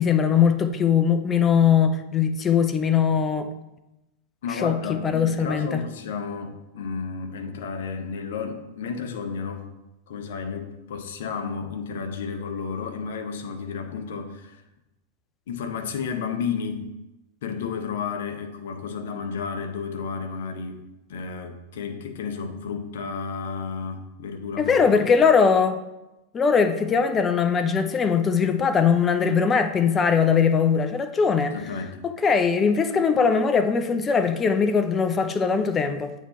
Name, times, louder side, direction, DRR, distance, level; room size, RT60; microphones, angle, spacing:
voice 1, 0.0-3.5 4.6-5.8 24.6-25.8 26.3-31.6 32.0-36.1, left 6 dB, 25° left, 8 dB, 0.6 m, -21 dB
voice 2, 4.4-9.7 10.1-14.6 15.5-16.9 17.4-24.7 31.5-32.0, left 5 dB, 60° left, 6 dB, 0.8 m, -32 dB
8.1 x 3.6 x 4.2 m, 0.95 s
figure-of-eight pair, 95°, 0 cm